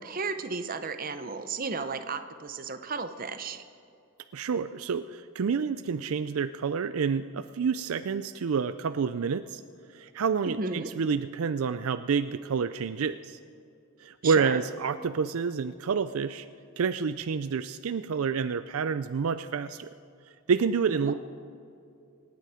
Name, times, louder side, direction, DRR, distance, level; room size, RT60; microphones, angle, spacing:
voice 1, 0.0-3.6 10.5-10.9 14.2-14.6 20.9-21.1, right 4 dB, 40° right, 10 dB, 0.8 m, -34 dB
voice 2, 4.3-9.6 9.9-13.4 14.0-16.5 16.8-19.9 20.5-21.1, right 6 dB, 70° right, 11 dB, 0.4 m, -28 dB
25.5 x 9.5 x 5.0 m, 2.5 s
head